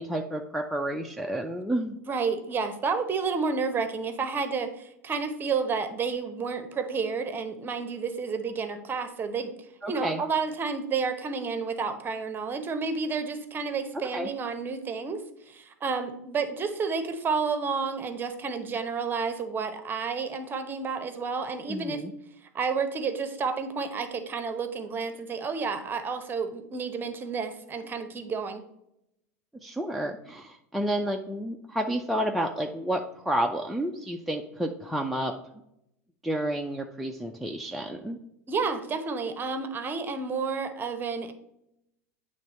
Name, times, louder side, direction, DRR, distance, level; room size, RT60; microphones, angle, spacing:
voice 1, 0.0-2.0 9.8-10.2 14.1-14.3 21.7-22.1 29.6-35.3 36.2-38.2, right 1 dB, ahead, 1 dB, 0.5 m, -30 dB
voice 2, 2.1-9.5 9.9-15.2 15.5-22.0 22.5-28.6 38.5-41.3, right 5 dB, 25° right, 8 dB, 0.9 m, -30 dB
9.0 x 3.2 x 4.2 m, 0.81 s
hypercardioid pair, 90°, 8 cm